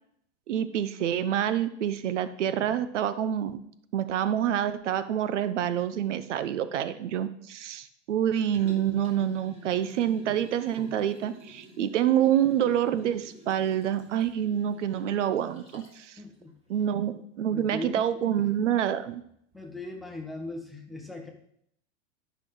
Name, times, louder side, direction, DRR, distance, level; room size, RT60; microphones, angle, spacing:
voice 1, 0.5-3.6 3.9-16.2 16.7-17.1 17.4-19.2, right 10 dB, 85° right, 12 dB, 0.8 m, -27 dB
Liquid, 8.4-16.0 16.5-16.6, equal, 15° right, 2.1 m, -48 dB
voice 2, 16.2-16.5 17.5-18.4 19.5-21.3, left 2 dB, ahead, 1 dB, 1.3 m, -39 dB
12.5 x 6.0 x 3.9 m, 0.70 s
supercardioid pair, 135°, 35 cm